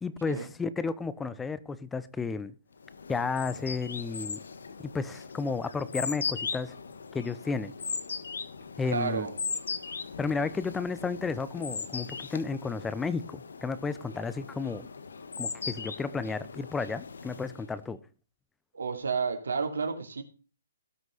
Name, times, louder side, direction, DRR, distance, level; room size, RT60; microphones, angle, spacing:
voice 1, 0.0-2.5 3.1-4.4 4.8-6.7 7.1-7.7 8.8-9.3 10.2-14.9 15.4-18.0, left 4 dB, 10° left, 0.8 m, -32 dB
sound 1, 2.8-17.8, left 5 dB, 80° left, 1.4 m, -39 dB
voice 2, 8.9-9.3 18.7-20.2, right 5 dB, 85° right, 2.8 m, -31 dB
18.0 x 6.1 x 4.1 m
hypercardioid pair, 145°, 0 cm